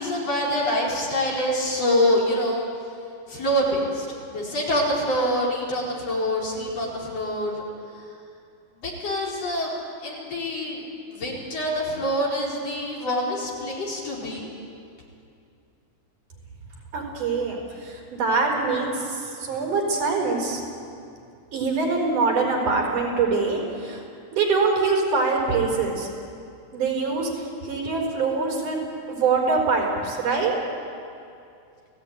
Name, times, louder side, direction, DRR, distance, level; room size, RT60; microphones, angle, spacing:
voice 1, 0.0-2.7 3.3-7.6 8.8-9.7 10.0-14.5, equal, 50° left, -3 dB, 5.6 m, -25 dB
voice 2, 16.9-20.6 21.5-24.0 24.3-26.1 26.7-30.6, right 4 dB, 80° right, 0 dB, 6.3 m, -24 dB
29.5 x 18.0 x 9.5 m, 2.5 s
omnidirectional pair, 3.6 m